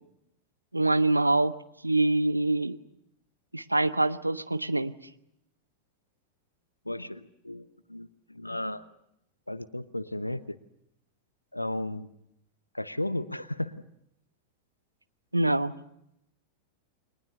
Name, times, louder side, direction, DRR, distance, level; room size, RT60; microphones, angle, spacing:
voice 1, 0.7-1.5 1.8-2.8 3.5-4.9 15.3-15.7, right 2 dB, 85° right, 11 dB, 1.0 m, -25 dB
voice 2, 6.9-8.8 9.5-10.6 11.5-12.1 12.7-13.7, left 1 dB, 85° left, 15 dB, 0.9 m, -34 dB
29.5 x 23.0 x 6.7 m, 0.79 s
figure-of-eight pair, 90°, 0 cm